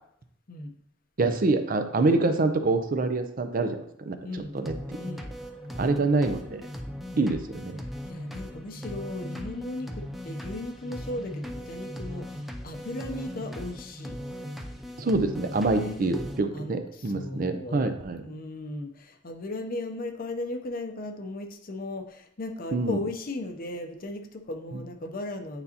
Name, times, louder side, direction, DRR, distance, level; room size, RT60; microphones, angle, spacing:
voice 1, 1.2-4.2 4.5-4.7 5.7-6.6 7.2-7.8 15.0-18.2 22.7-23.0, right 3 dB, 50° right, 8 dB, 0.5 m, -26 dB
voice 2, 4.2-4.6 5.0-5.3 8.1-14.2 15.7-16.0 16.5-17.9 18.2-25.6, left 2 dB, 50° left, 6 dB, 0.7 m, -36 dB
sound 1, 4.6-16.4, equal, ahead, 0.5 m, -38 dB
8.9 x 4.0 x 2.9 m, 0.70 s
head